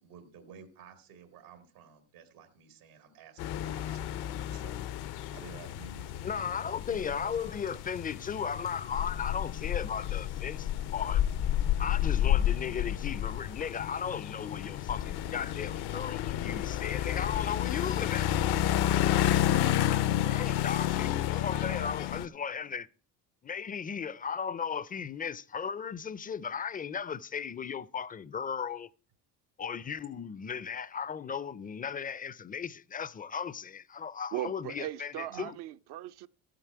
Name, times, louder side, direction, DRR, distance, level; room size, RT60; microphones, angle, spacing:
voice 1, 0.0-7.8 9.3-9.5 19.4-20.4 21.5-21.9 22.2-22.3 22.7-22.8 35.3-35.5, right 5 dB, 90° right, 1.8 m, -52 dB
sound 1, 3.4-22.3, left 12 dB, 60° left, 0.6 m, -30 dB
voice 2, 6.2-11.2 11.8-18.3 20.3-22.9 23.4-28.9 29.6-35.5, left 7 dB, 20° left, 0.4 m, -36 dB
voice 3, 34.3-36.3, right 13 dB, 60° right, 0.6 m, -38 dB
13.5 x 7.7 x 4.5 m
supercardioid pair, 75°, 44 cm